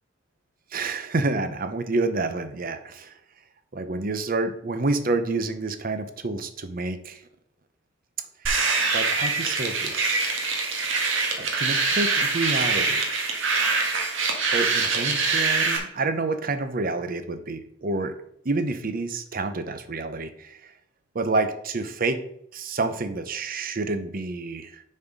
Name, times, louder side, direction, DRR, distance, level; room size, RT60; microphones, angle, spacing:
voice 1, 0.7-3.1 3.7-7.2 8.9-10.3 11.4-13.0 14.5-18.1 18.4-20.7 21.1-22.2 22.5-24.8, right 3 dB, 50° right, 10 dB, 0.8 m, -28 dB
sound 1, 8.5-15.8, right 4 dB, 85° right, 1.6 m, -24 dB
7.0 x 4.3 x 5.2 m, 0.72 s
head